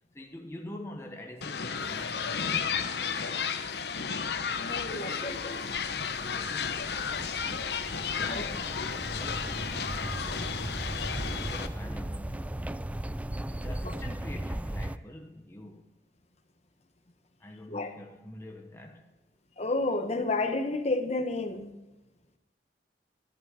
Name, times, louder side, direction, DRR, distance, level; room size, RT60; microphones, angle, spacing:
voice 1, 0.1-3.5 6.2-7.2 7.9-10.7 11.2-12.8 13.5-15.8 17.4-19.1, left 1 dB, 15° left, 1.0 m, -45 dB
sound 1, 1.4-11.7, left 6 dB, 65° left, 0.9 m, -33 dB
voice 2, 4.6-5.6 8.3-8.4 13.8-13.9 17.7-17.9 19.6-21.7, left 2 dB, 40° left, 1.3 m, -31 dB
sound 2, 5.4-15.0, right 1 dB, 10° right, 0.3 m, -37 dB
13.5 x 11.5 x 5.0 m
head